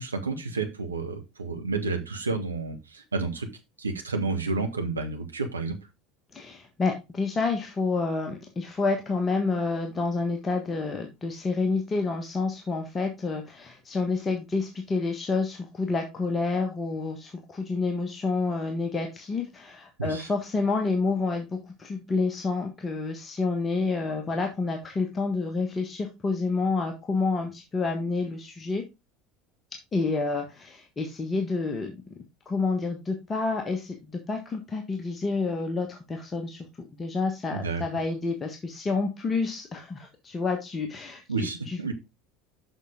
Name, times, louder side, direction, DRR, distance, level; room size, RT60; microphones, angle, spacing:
voice 1, 0.0-3.5 3.8-5.8 20.0-20.3 37.5-37.8 41.3-41.9, right 3 dB, 80° right, 5 dB, 1.1 m, -30 dB
voice 2, 6.3-28.8 29.9-32.0 32.4-36.6 36.9-41.9, left 3 dB, 25° left, 3 dB, 1.3 m, -29 dB
7.1 x 5.8 x 3.7 m, 0.24 s
figure-of-eight pair, 70°, 0 cm